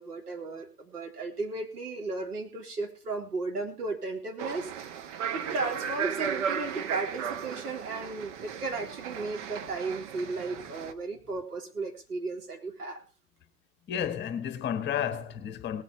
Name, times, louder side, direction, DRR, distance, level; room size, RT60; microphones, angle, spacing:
voice 1, 0.0-4.7 5.3-13.0, right 3 dB, 75° right, 3.9 m, -35 dB
sound 1, 4.4-10.9, right 8 dB, 50° right, 1.4 m, -35 dB
voice 2, 13.9-15.8, left 9 dB, 25° left, 1.5 m, -32 dB
18.5 x 8.9 x 4.6 m
figure-of-eight pair, 105°, 46 cm